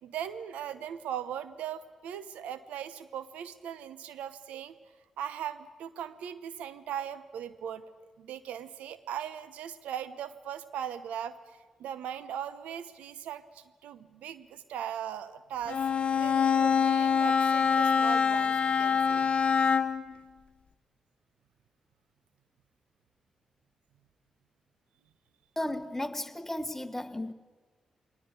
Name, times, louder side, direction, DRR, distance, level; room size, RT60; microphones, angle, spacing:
voice 1, 0.0-4.7 5.2-7.8 8.2-15.8 16.1-19.3, right 9 dB, 80° right, 0.9 m, -39 dB
Bowed string instrument, 15.7-20.1, left 6 dB, 60° left, 1.0 m, -25 dB
voice 2, 25.6-27.3, left 1 dB, 15° left, 1.4 m, -34 dB
22.0 x 19.0 x 8.3 m
hypercardioid pair, 40°, 2 cm